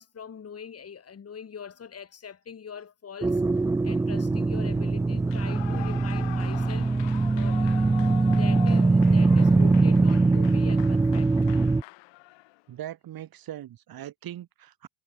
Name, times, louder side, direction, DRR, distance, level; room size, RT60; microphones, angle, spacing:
voice 1, 0.0-3.4 3.8-6.9 7.3-11.3, left 7 dB, 30° left, 3.1 m, -42 dB
sound 1, 3.2-11.8, right 3 dB, 5° right, 0.3 m, -22 dB
Clapping / Cheering / Applause, 5.2-12.6, left 21 dB, 70° left, 4.5 m, -43 dB
voice 2, 12.7-14.9, right 12 dB, 50° right, 2.3 m, -40 dB
supercardioid pair, 80°, 46 cm